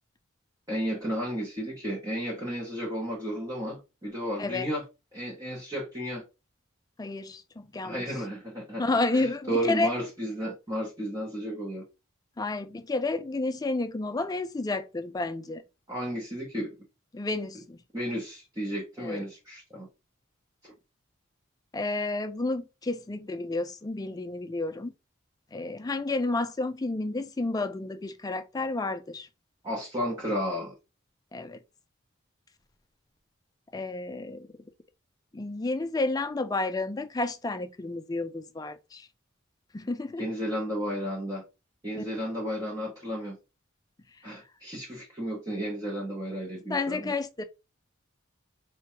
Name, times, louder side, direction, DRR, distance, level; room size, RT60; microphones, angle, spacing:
voice 1, 0.7-4.8 5.1-6.2 7.8-8.8 9.1-11.8 15.9-16.7 17.9-19.9 20.6-20.7 29.6-30.7 40.2-41.4 41.8-43.4 44.2-47.1, equal, 15° right, 0.7 m, -33 dB
voice 2, 7.0-8.0 8.8-9.9 12.4-15.6 17.1-17.8 19.0-19.2 21.7-24.9 25.5-29.3 31.3-31.6 33.7-34.5 35.3-39.1 39.7-40.2 41.9-42.0 44.2-44.3 46.7-47.4, left 2 dB, 20° left, 0.3 m, -31 dB
4.4 x 2.2 x 2.9 m
head